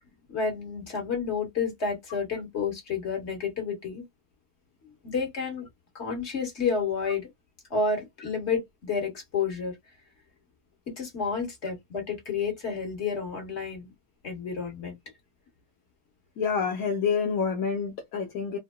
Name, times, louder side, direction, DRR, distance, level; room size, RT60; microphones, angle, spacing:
voice 1, 0.3-4.0 4.8-5.7 6.0-7.3 7.7-9.8 11.0-13.9 14.2-15.0, left 5 dB, 50° left, 1.9 m, -30 dB
voice 2, 16.4-18.6, left 6 dB, 70° left, 1.3 m, -27 dB
4.0 x 2.2 x 2.2 m
omnidirectional pair, 1.5 m